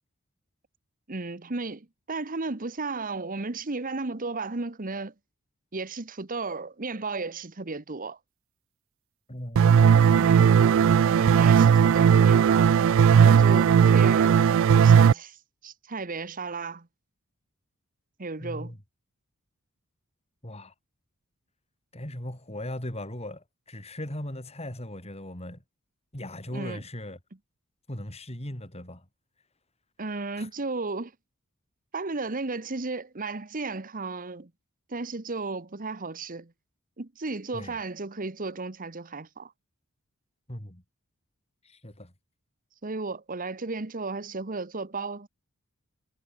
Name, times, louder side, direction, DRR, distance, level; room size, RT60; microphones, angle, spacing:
voice 1, 1.1-5.1 5.7-8.2 10.1-10.6 11.1-12.8 13.2-14.4 14.7-15.4 15.6-16.9 18.2-18.7 26.5-26.8 30.0-31.1 31.9-34.5 34.9-36.5 37.0-39.5 42.8-45.3, right 3 dB, 40° right, 1.2 m, -34 dB
voice 2, 9.3-10.7 11.8-11.9 18.4-18.8 20.4-20.7 21.9-25.6 26.1-27.2 27.9-29.1 30.4-30.5 37.5-37.8 40.5-40.8 41.6-42.1, left 1 dB, 30° left, 4.9 m, -39 dB
sound 1, 9.6-15.1, right 7 dB, 65° right, 0.3 m, -17 dB
head